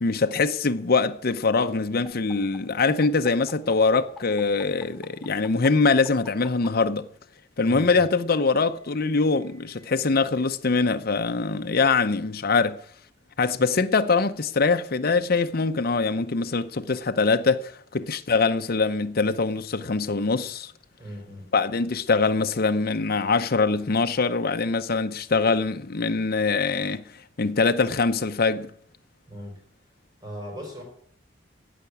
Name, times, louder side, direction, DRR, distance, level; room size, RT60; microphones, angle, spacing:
voice 1, 0.0-7.1 7.6-12.8 13.4-20.7 21.5-27.0 27.4-28.7, left 4 dB, 55° left, 0.7 m, -23 dB
sound 1, 2.1-6.7 7.8-10.1, left 1 dB, ahead, 3.0 m, -48 dB
voice 2, 7.6-8.1 21.0-21.5 29.3-29.6 30.2-30.8, equal, 20° right, 4.7 m, -38 dB
16.0 x 5.8 x 9.8 m
head